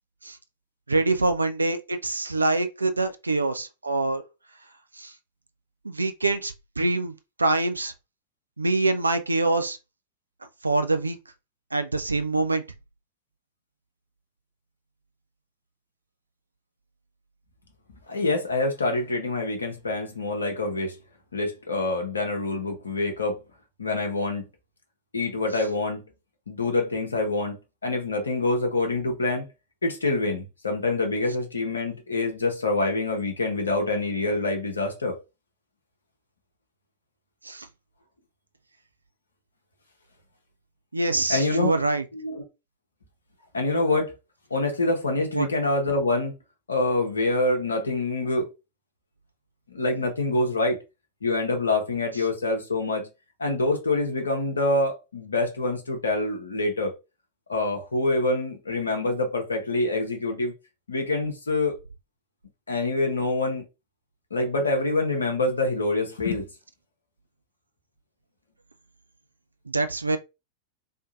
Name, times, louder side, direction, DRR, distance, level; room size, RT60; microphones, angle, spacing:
voice 1, 0.9-4.2 5.0-5.1 5.8-7.9 8.6-9.8 10.6-11.2 11.7-12.6 37.4-37.7 40.9-42.0 45.3-45.5 69.7-70.2, right 2 dB, 80° right, 0.4 m, -25 dB
voice 2, 18.1-20.9 21.3-23.4 23.8-24.5 25.1-26.0 26.5-29.5 29.8-35.2 41.3-41.8 42.1-42.4 43.5-44.1 44.5-46.4 46.7-48.5 49.7-50.8 51.2-53.1 53.4-56.9 57.5-60.5 60.9-61.7 62.7-63.6 64.3-66.5, left 2 dB, 75° left, 0.7 m, -26 dB
3.5 x 2.7 x 2.5 m
figure-of-eight pair, 90°, 0 cm